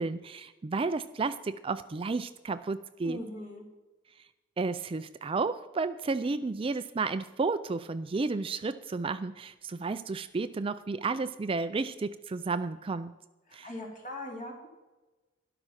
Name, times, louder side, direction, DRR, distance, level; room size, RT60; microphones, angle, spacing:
voice 1, 0.0-3.2 4.6-13.1 13.5-13.7, right 3 dB, 30° right, 12 dB, 0.4 m, -32 dB
voice 2, 3.0-3.7 13.5-14.7, left 1 dB, 40° left, 0 dB, 3.2 m, -40 dB
13.0 x 11.0 x 5.8 m, 1.1 s
head